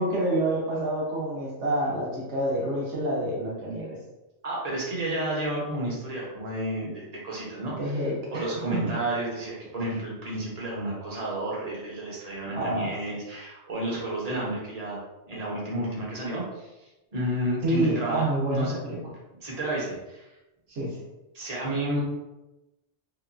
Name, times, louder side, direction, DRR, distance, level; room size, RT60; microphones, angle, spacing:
voice 1, 0.0-4.0 7.8-8.5 12.5-12.9 17.6-19.0 20.7-21.0, right 1 dB, 70° right, -4 dB, 1.2 m, -27 dB
voice 2, 4.4-8.0 8.3-18.8 19.4-20.2 21.3-22.0, right 1 dB, 40° right, -4 dB, 0.8 m, -31 dB
2.9 x 2.2 x 2.5 m, 0.99 s
omnidirectional pair, 1.2 m